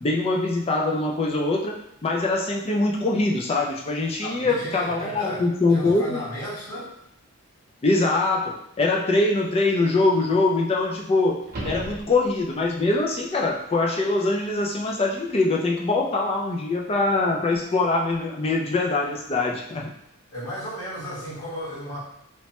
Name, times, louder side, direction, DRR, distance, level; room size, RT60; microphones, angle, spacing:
voice 1, 0.0-6.2 7.8-19.9, left 2 dB, 25° left, 0 dB, 0.3 m, -23 dB
voice 2, 4.2-6.9 20.3-22.0, equal, 75° left, -12 dB, 1.4 m, -34 dB
sound 1, 11.4-12.7 17.5-17.6, right 1 dB, 45° right, 0.8 m, -35 dB
3.0 x 2.1 x 2.9 m, 0.81 s
head